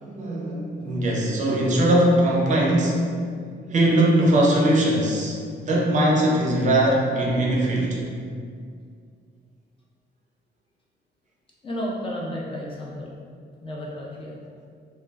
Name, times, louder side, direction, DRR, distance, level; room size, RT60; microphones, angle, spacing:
voice 1, 0.0-5.4 5.6-8.0, right 1 dB, 40° right, -3 dB, 0.5 m, -21 dB
voice 2, 11.6-13.1 13.6-14.4, equal, 30° left, -4 dB, 0.3 m, -32 dB
2.2 x 2.1 x 3.3 m, 2.2 s
cardioid pair, 160°, 19 cm